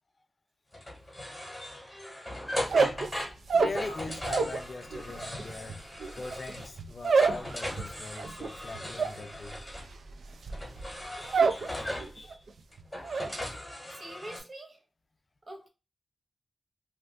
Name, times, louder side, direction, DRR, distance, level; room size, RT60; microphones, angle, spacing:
sound 1, 0.7-6.8 7.0-9.9 10.5-12.2 12.7-14.4, left 1 dB, 10° left, 1.2 m, -38 dB
sound 2, 2.6-4.6 4.9-11.7 12.0-12.5 12.8-13.3, right 4 dB, 80° right, 0.3 m, -28 dB
voice 1, 2.8-3.1 3.5-5.8 6.2-9.7 11.2-12.4, left 3 dB, 40° left, 0.4 m, -41 dB
voice 2, 13.5-14.8 15.4-15.7, right 1 dB, 35° right, 0.7 m, -46 dB
2.7 x 2.4 x 3.3 m
wide cardioid pair, 155°, 0 cm